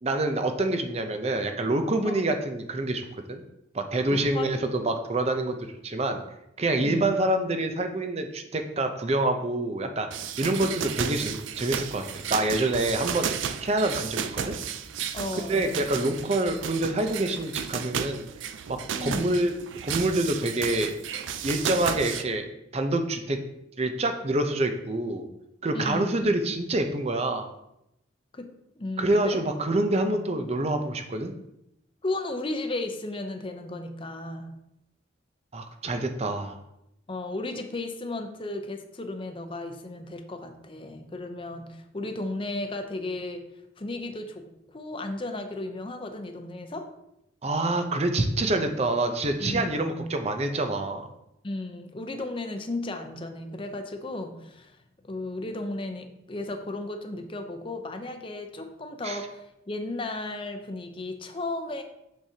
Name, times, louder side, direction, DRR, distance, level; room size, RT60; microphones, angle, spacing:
voice 1, 0.0-3.4 3.7-5.6 5.8-6.2 6.6-10.1 10.4-13.3 13.6-14.6 15.4-18.3 19.0-19.5 19.8-20.9 21.4-23.4 23.8-25.3 25.6-27.5 29.0-31.3 35.5-36.6 47.4-51.1 59.0-59.2, right 2 dB, 35° right, 6 dB, 0.6 m, -26 dB
voice 2, 4.1-4.5 6.8-7.1 15.1-15.7 18.9-19.4 25.7-26.2 28.3-28.5 28.8-29.4 30.0-30.1 32.0-34.5 37.1-43.4 43.8-44.5 44.7-46.9 49.4-50.1 51.4-54.7 55.0-61.8, left 2 dB, 30° left, 5 dB, 0.6 m, -34 dB
sound 1, 10.1-22.2, right 8 dB, 85° right, 0.4 m, -33 dB
6.4 x 6.2 x 2.8 m, 0.83 s
head